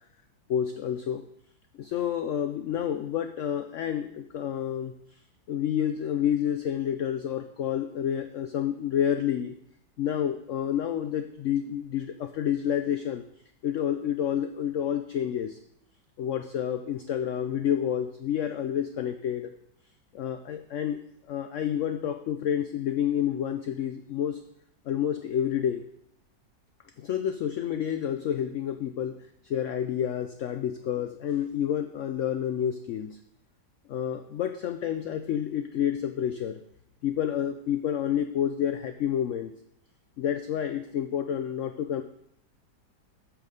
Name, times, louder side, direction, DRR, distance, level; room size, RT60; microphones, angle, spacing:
voice 1, 0.5-1.2 1.7-4.9 5.5-9.5 10.0-13.2 13.6-15.6 16.2-19.5 20.1-21.0 21.3-24.4 24.9-25.8 27.0-29.2 29.4-33.2 33.9-36.6 37.0-39.5 40.2-42.0, left 9 dB, 70° left, 8 dB, 0.7 m, -29 dB
8.6 x 6.4 x 6.5 m, 0.72 s
omnidirectional pair, 1.9 m